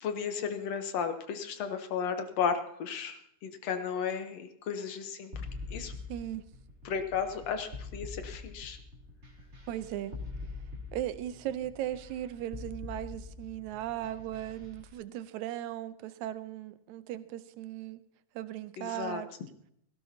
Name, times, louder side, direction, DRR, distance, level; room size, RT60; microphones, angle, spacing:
voice 1, 0.0-5.3 5.7-5.9 6.9-8.8 18.8-19.2, left 6 dB, 65° left, 7 dB, 1.9 m, -34 dB
sound 1, 5.3-14.8, left 3 dB, 20° right, 2.7 m, -43 dB
voice 2, 6.1-6.4 9.7-10.2 10.9-18.0 18.4-19.3, right 12 dB, 75° right, 13 dB, 1.9 m, -37 dB
17.5 x 17.0 x 2.8 m, 0.72 s
omnidirectional pair, 3.7 m